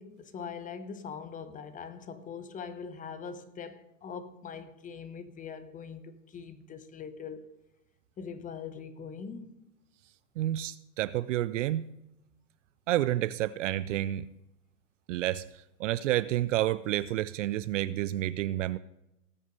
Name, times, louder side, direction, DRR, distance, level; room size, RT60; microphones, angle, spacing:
voice 1, 0.0-7.5 8.2-9.7, left 6 dB, 15° left, 0.9 m, -42 dB
voice 2, 10.4-11.9 12.9-14.3 15.1-15.4 15.8-18.8, right 14 dB, 50° right, 0.5 m, -29 dB
18.5 x 6.4 x 5.3 m
hypercardioid pair, 115°, 47 cm